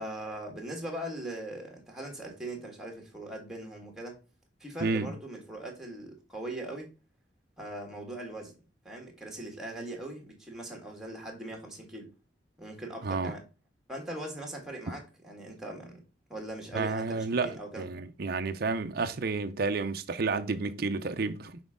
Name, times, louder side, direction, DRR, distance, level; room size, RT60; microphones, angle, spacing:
voice 1, 0.0-4.2 4.6-6.9 7.6-8.5 8.9-12.1 12.6-13.4 13.9-16.0 16.3-17.9, right 1 dB, 5° right, 1.7 m, -40 dB
voice 2, 4.8-5.1 13.0-13.3 16.7-21.6, right 4 dB, 55° right, 0.6 m, -31 dB
6.2 x 4.4 x 3.6 m
head